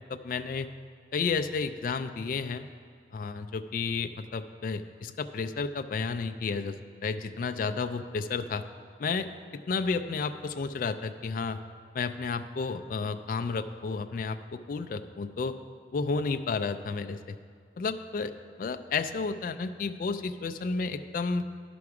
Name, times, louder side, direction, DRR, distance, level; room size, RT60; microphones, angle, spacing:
voice 1, 0.1-0.7 1.1-2.7 3.1-6.8 7.0-8.6 9.0-9.3 9.7-11.6 11.9-15.6 15.9-17.4 17.8-18.3 18.6-21.5, left 4 dB, 50° left, 7 dB, 0.3 m, -31 dB
10.5 x 6.0 x 4.8 m, 2.1 s
head